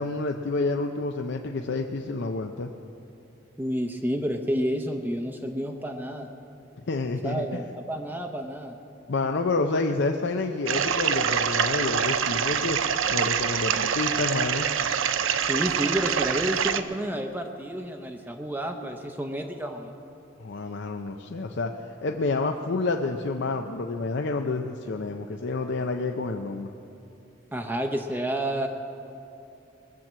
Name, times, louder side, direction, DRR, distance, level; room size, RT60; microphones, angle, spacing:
voice 1, 0.0-2.7 6.9-7.6 9.1-12.8 13.1-14.7 20.4-21.7 22.0-26.7, left 3 dB, 60° left, 4 dB, 0.6 m, -29 dB
voice 2, 3.6-6.3 7.2-8.8 15.5-19.9 27.5-28.7, equal, 10° right, 3 dB, 0.7 m, -30 dB
sound 1, 10.7-16.8, right 7 dB, 90° right, 0.6 m, -25 dB
20.5 x 7.4 x 7.4 m, 2.9 s
head